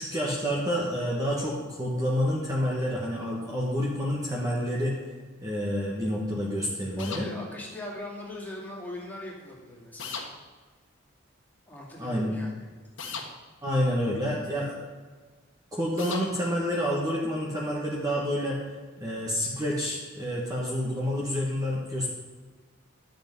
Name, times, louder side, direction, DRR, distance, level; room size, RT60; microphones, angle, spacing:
voice 1, 0.0-5.0 5.4-7.3 12.0-12.4 13.6-14.8 15.7-18.6 19.0-22.1, equal, 15° right, -4 dB, 1.4 m, -28 dB
sound 1, 7.0-7.3 10.0-10.3 13.0-13.3 16.0-16.3, left 5 dB, 65° left, 1.4 m, -36 dB
voice 2, 7.0-10.3 11.7-12.7 13.0-13.2, left 1 dB, 10° left, -4 dB, 2.5 m, -40 dB
12.0 x 7.8 x 5.4 m, 1.4 s
head